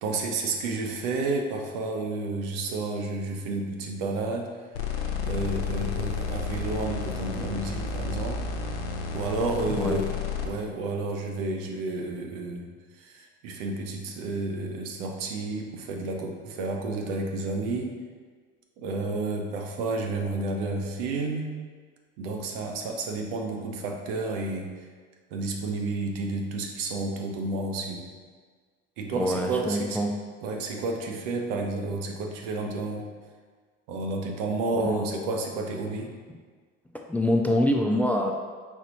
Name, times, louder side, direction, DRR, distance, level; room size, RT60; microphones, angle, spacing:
voice 1, 0.0-4.5 5.2-8.4 9.1-10.1 10.4-12.7 13.0-17.9 18.8-21.5 22.2-24.7 25.3-28.0 29.0-30.0 30.4-33.1 33.9-36.1, right 3 dB, 70° right, 2 dB, 0.8 m, -31 dB
sound 1, 4.8-10.5, left 5 dB, 90° left, 0.6 m, -31 dB
voice 2, 29.2-30.1 34.8-35.0 37.1-38.3, left 1 dB, 5° left, 2 dB, 0.3 m, -25 dB
4.5 x 4.0 x 2.9 m, 1.5 s
hypercardioid pair, 75°, 30 cm